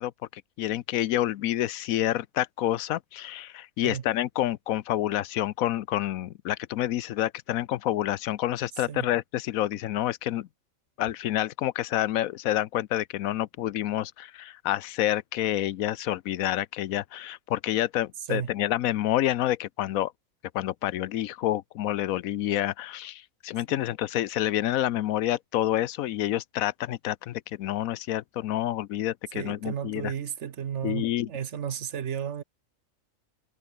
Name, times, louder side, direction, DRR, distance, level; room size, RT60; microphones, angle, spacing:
voice 1, 0.0-10.5 11.0-20.1 20.5-30.1 30.8-31.3, left 13 dB, 90° left, 1.1 m, -28 dB
voice 2, 29.3-32.4, right 8 dB, 60° right, 1.2 m, -33 dB
omnidirectional pair, 1.4 m